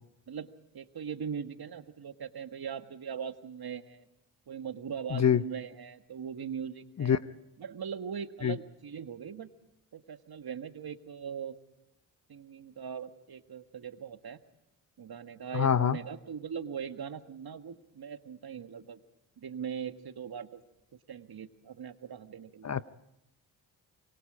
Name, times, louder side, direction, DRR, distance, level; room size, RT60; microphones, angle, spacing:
voice 1, 0.7-4.0 4.5-7.2 7.6-9.5 9.9-11.6 12.3-14.4 15.0-19.0 19.4-20.6 21.1-22.7, right 7 dB, 45° right, 9 dB, 1.7 m, -40 dB
voice 2, 5.1-5.4 7.0-7.2 8.4-8.5 15.5-16.0 22.6-22.8, left 8 dB, 35° left, 16 dB, 0.8 m, -25 dB
26.0 x 23.0 x 4.9 m, 0.86 s
hypercardioid pair, 40°, 49 cm